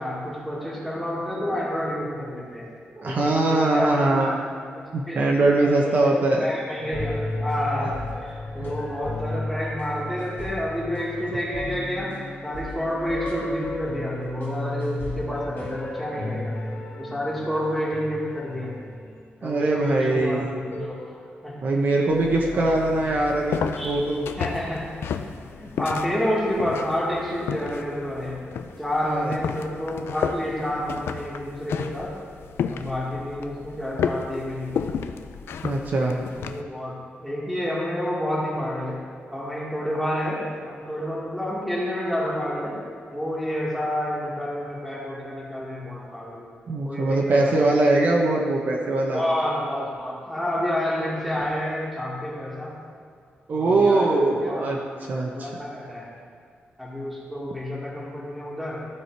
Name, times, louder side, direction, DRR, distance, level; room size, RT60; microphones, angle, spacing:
voice 1, 0.0-2.7 3.0-4.3 4.8-12.1 12.4-16.6 17.0-18.7 19.4-21.6 22.5-23.2 23.8-24.0 24.4-24.9 25.5-28.4 28.8-32.1 32.7-34.9 36.3-39.0 39.3-42.8 43.1-46.5 46.8-48.0 49.1-52.8 53.5-54.7 55.0-56.1 56.8-58.8, equal, ahead, -5 dB, 1.8 m, -29 dB
voice 2, 3.0-4.4 4.9-6.5 8.5-8.8 19.4-20.5 21.6-23.6 23.8-24.3 29.1-29.3 35.6-36.2 46.7-49.2 53.5-55.5, right 2 dB, 50° right, -1 dB, 0.8 m, -22 dB
sound 1, 6.8-19.5 20.0-20.8, left 2 dB, 55° left, 1.6 m, -34 dB
sound 2, 22.1-36.6, left 7 dB, 90° left, 0.5 m, -33 dB
14.0 x 4.8 x 4.6 m, 2.2 s
wide cardioid pair, 170°, 4 cm